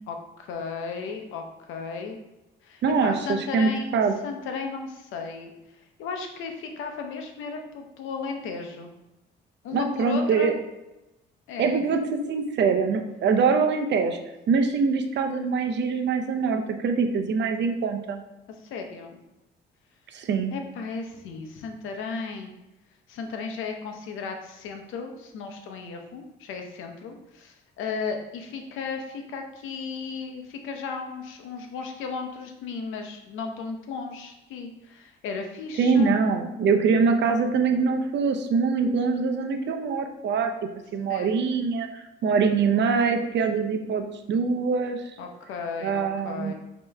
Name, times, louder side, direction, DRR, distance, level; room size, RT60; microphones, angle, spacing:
voice 1, 0.1-2.2 2.6-3.9 4.2-5.5 6.0-8.9 9.6-10.6 11.5-11.8 18.6-19.2 20.5-22.5 23.1-36.2 41.1-41.3 45.2-46.5, left 5 dB, 90° left, 4 dB, 0.7 m, -35 dB
voice 2, 2.8-4.1 9.7-10.5 11.6-14.2 14.5-18.2 20.1-20.5 35.8-40.5 40.9-45.0 45.8-46.5, right 5 dB, 60° right, 5 dB, 0.6 m, -24 dB
5.4 x 2.9 x 3.4 m, 0.97 s
cardioid pair, 90°, 20 cm